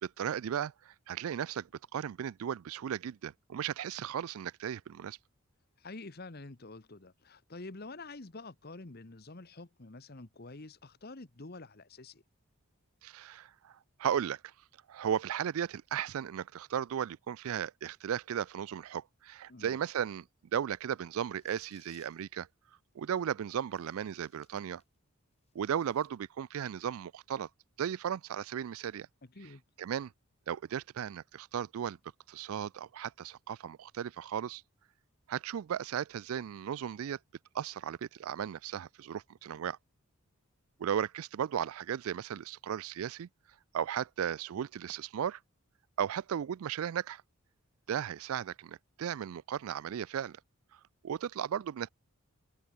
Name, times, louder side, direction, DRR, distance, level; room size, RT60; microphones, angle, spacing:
voice 1, 0.0-5.2 13.0-14.5 14.9-20.2 20.5-22.5 23.0-24.8 25.5-27.5 27.8-29.1 29.8-30.1 30.5-32.0 32.3-34.6 35.3-37.2 37.5-39.8 40.8-43.3 43.7-45.4 46.0-47.2 47.9-50.4 50.7-51.9, right 9 dB, 70° right, 0.3 m, -36 dB
voice 2, 5.8-12.2 19.5-19.8 29.2-29.6, left 3 dB, 45° left, 1.2 m, -47 dB
sound 1, 21.2-22.3 23.0-23.1 23.7-25.0 25.3-26.1, left 7 dB, 30° left, 7.8 m, -66 dB
open air
head